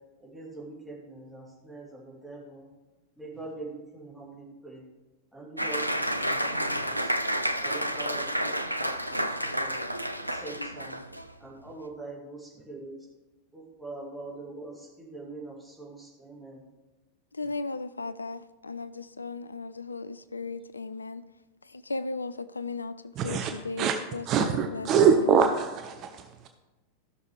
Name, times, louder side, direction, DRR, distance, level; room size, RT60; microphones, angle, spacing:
voice 1, 0.2-2.7 3.2-4.8 5.3-7.2 7.6-9.8 10.3-11.0 11.4-13.0 13.5-16.6, right 2 dB, 5° right, 3.0 m, -43 dB
Applause, 5.6-11.3, equal, 90° right, 0.5 m, -30 dB
voice 2, 17.3-21.2 21.6-24.9, left 3 dB, 80° left, 0.3 m, -36 dB
voice 3, 23.1-23.5 23.8-24.0 24.2-26.5, right 7 dB, 35° right, 0.7 m, -24 dB
15.0 x 6.3 x 3.3 m
figure-of-eight pair, 90°, 0 cm